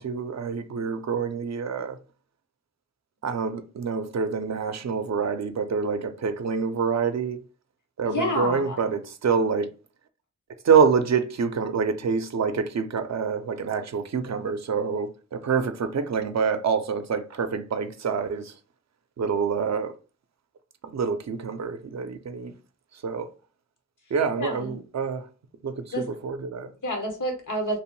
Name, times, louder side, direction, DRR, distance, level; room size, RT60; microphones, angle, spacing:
voice 1, 0.0-2.0 3.2-7.4 8.0-9.7 10.6-18.5 19.2-19.9 20.8-22.5 23.0-23.3 24.1-25.3 25.6-26.7, right 6 dB, 60° right, 0.5 m, -26 dB
voice 2, 8.0-8.8 24.4-24.7 25.9-26.0 26.8-27.8, equal, 80° left, 1.0 m, -28 dB
2.9 x 2.1 x 3.0 m
cardioid pair, 45°, 30 cm